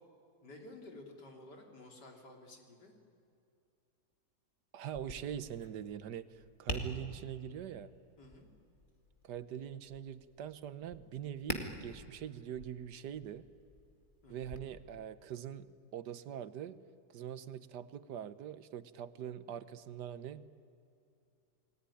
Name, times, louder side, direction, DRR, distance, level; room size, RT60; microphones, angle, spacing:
voice 1, 0.4-2.9 8.2-8.5 14.2-14.5, left 2 dB, 75° left, 2 dB, 3.9 m, -53 dB
voice 2, 4.7-7.9 9.2-13.4 14.3-16.7 17.1-20.4, right 9 dB, 75° right, 14 dB, 1.5 m, -43 dB
Tap, 4.9-14.6, left 1 dB, 30° left, 2.3 m, -47 dB
29.0 x 20.0 x 10.0 m, 2.6 s
omnidirectional pair, 1.8 m